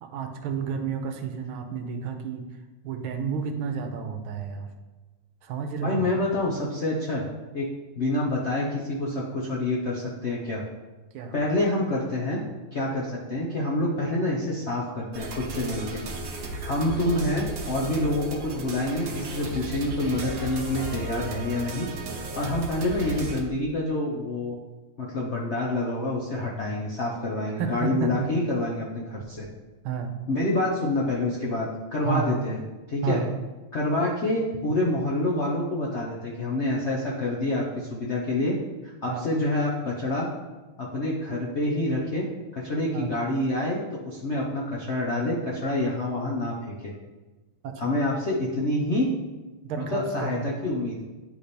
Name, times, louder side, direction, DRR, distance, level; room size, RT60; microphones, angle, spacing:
voice 1, 0.0-2.5 2.8-4.7 5.4-6.1 11.1-11.3 27.6-28.3 29.8-30.2 32.0-32.4 33.0-33.3 39.1-39.3 42.9-43.2 47.6-48.0 49.6-50.5, right 6 dB, 80° right, 6 dB, 1.5 m, -31 dB
voice 2, 5.8-7.2 7.5-7.7 8.0-10.6 11.3-12.4 12.7-16.0 16.6-21.9 22.1-24.6 25.0-29.5 30.3-32.6 32.9-33.2 33.7-38.5 38.8-40.3 40.8-42.3 42.5-46.9 47.8-49.1 49.9-51.0, left 1 dB, 65° left, -4 dB, 0.6 m, -27 dB
sound 1, 15.1-23.4, right 2 dB, 55° right, 1.1 m, -35 dB
9.5 x 3.3 x 4.2 m, 1.2 s
omnidirectional pair, 2.3 m